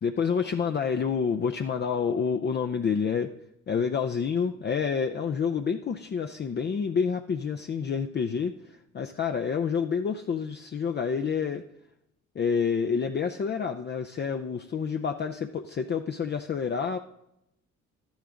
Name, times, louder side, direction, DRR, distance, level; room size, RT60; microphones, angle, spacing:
voice 1, 0.0-3.3 3.7-11.6 12.4-17.0, left 6 dB, 35° left, 6 dB, 0.5 m, -28 dB
11.5 x 10.5 x 3.8 m, 0.81 s
cardioid pair, 90°, 30 cm